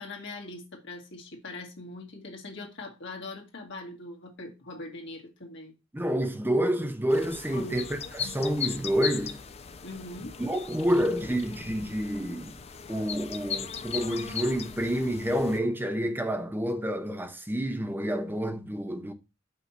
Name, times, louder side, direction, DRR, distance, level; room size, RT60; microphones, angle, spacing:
voice 1, 0.0-5.7 7.5-7.8 8.2-8.3 9.8-10.3, left 2 dB, 60° left, 2.1 m, -41 dB
voice 2, 5.9-9.4 10.4-12.5 12.9-19.1, equal, 10° right, 0.7 m, -28 dB
sound 1, 7.1-15.6, left 7 dB, 30° left, 0.5 m, -38 dB
5.8 x 4.6 x 5.9 m
head